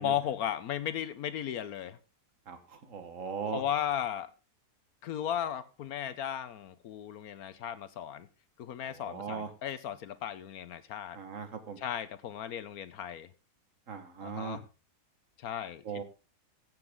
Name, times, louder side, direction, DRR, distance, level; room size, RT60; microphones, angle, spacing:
voice 1, 0.0-2.0 3.5-4.3 5.0-8.3 8.6-11.2 11.8-13.3 14.2-14.7 15.4-16.0, left 10 dB, 70° left, 14 dB, 1.2 m, -35 dB
voice 2, 2.5-3.6 8.8-9.5 11.1-11.8 13.9-14.6 15.9-16.0, right 6 dB, 55° right, 8 dB, 1.8 m, -39 dB
15.0 x 7.7 x 3.7 m, 0.31 s
omnidirectional pair, 1.7 m